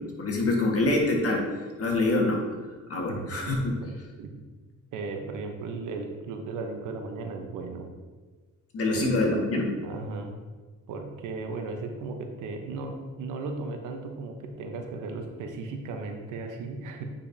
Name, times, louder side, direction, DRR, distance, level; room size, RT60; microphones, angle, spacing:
voice 1, 0.0-1.4 1.8-2.4 2.9-3.7 8.7-9.7, left 2 dB, 50° left, 0 dB, 1.6 m, -25 dB
voice 2, 3.1-3.9 4.2-4.4 4.9-7.9 8.8-9.1 9.8-10.3 10.9-17.1, right 3 dB, 90° right, 4 dB, 1.0 m, -36 dB
8.6 x 5.4 x 2.7 m, 1.4 s
cardioid pair, 90°, 30 cm